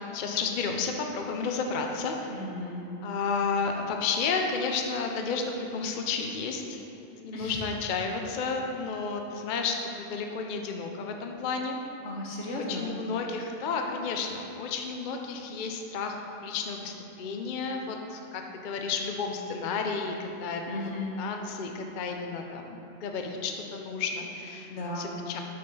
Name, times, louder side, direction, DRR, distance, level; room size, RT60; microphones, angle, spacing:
voice 1, 0.1-2.3 3.0-6.8 7.2-11.8 12.7-20.6 21.2-25.4, left 5 dB, 55° left, 3 dB, 0.6 m, -32 dB
voice 2, 2.3-2.8 7.3-7.6 12.0-12.9 20.7-21.1 24.7-25.2, left 1 dB, 80° left, -2 dB, 1.3 m, -35 dB
6.5 x 4.2 x 5.4 m, 2.8 s
omnidirectional pair, 1.2 m